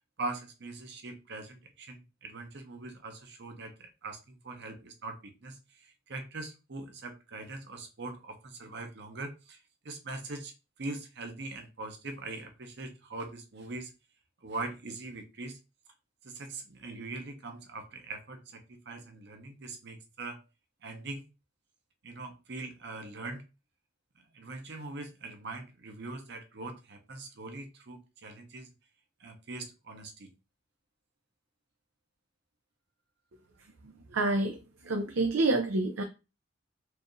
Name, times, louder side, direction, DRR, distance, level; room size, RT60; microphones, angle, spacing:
voice 1, 0.2-9.6 9.8-10.5 10.8-13.9 14.4-15.6 16.2-20.4 20.8-21.2 22.0-23.4 24.2-28.7 29.2-30.3, right 3 dB, 55° right, 5 dB, 0.8 m, -42 dB
voice 2, 34.1-34.6 34.9-36.0, right 2 dB, 85° right, 4 dB, 0.6 m, -27 dB
4.6 x 2.6 x 3.1 m, 0.28 s
head